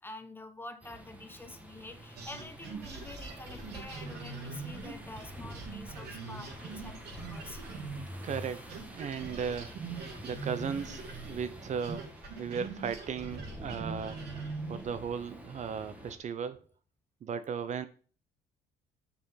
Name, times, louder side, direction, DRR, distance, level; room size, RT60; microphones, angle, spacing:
voice 1, 0.0-7.6 10.5-10.8, left 2 dB, 10° left, 8 dB, 1.1 m, -47 dB
sound 1, 0.8-16.2, right 1 dB, 10° right, 1.6 m, -47 dB
sound 2, 2.2-8.4 8.7-14.9, right 4 dB, 80° right, 2.7 m, -43 dB
voice 2, 8.2-9.7 10.2-12.1 12.4-14.2 14.7-16.6 17.2-17.9, right 6 dB, 45° right, 12 dB, 0.7 m, -36 dB
6.7 x 5.7 x 5.6 m, 0.41 s
cardioid pair, 110°, 17 cm